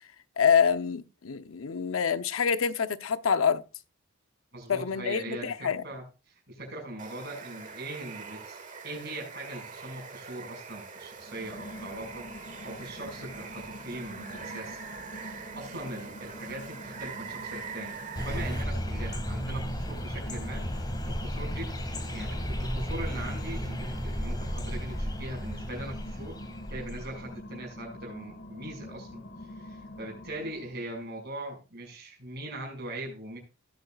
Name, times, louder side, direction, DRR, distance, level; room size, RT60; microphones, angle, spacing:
voice 1, 0.4-3.6 4.7-5.8, left 6 dB, 85° left, 0.7 m, -26 dB
voice 2, 4.5-5.5 5.8-21.7 22.1-26.4 26.7-29.2 29.6-33.4, right 1 dB, 55° right, 5.7 m, -41 dB
Water, 7.0-18.6, right 5 dB, 40° right, 1.4 m, -43 dB
sound 1, 11.2-30.9, left 1 dB, 55° left, 1.9 m, -46 dB
sound 2, 18.1-27.3, equal, 20° left, 2.0 m, -34 dB
18.5 x 8.1 x 2.4 m
head